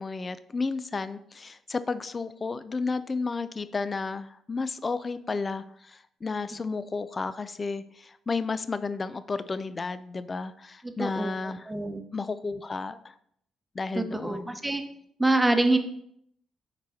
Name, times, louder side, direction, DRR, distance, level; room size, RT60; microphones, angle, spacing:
voice 1, 0.0-11.7 12.1-13.1 13.7-14.5, left 4 dB, 30° left, 13 dB, 0.4 m, -32 dB
voice 2, 10.8-11.3 11.7-12.0 14.0-14.8 15.2-15.8, right 2 dB, 10° right, 7 dB, 0.8 m, -25 dB
5.9 x 4.9 x 4.2 m, 0.69 s
cardioid pair, 90°, 0 cm